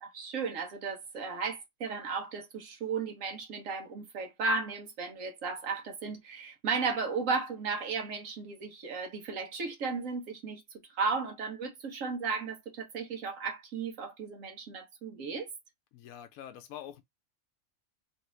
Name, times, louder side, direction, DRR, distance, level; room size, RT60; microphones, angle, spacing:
voice 1, 0.0-15.5, right 4 dB, 65° right, 1.3 m, -35 dB
voice 2, 15.9-17.0, left 10 dB, 80° left, 1.0 m, -45 dB
3.3 x 2.5 x 3.1 m
omnidirectional pair, 1.5 m